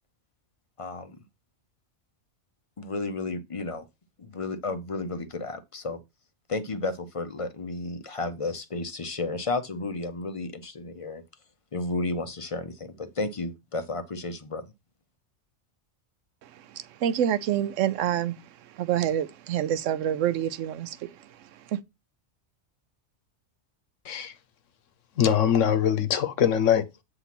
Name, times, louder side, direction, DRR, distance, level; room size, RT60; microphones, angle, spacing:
voice 1, 0.8-1.2 2.8-3.8 4.2-6.0 6.5-11.2 11.7-14.6, left 3 dB, 40° left, 0.5 m, -32 dB
voice 2, 16.4-18.4 18.6-21.8, right 10 dB, 90° right, 0.9 m, -28 dB
voice 3, 25.2-27.0, left 9 dB, 85° left, 1.2 m, -23 dB
8.2 x 2.9 x 5.8 m
omnidirectional pair, 1.3 m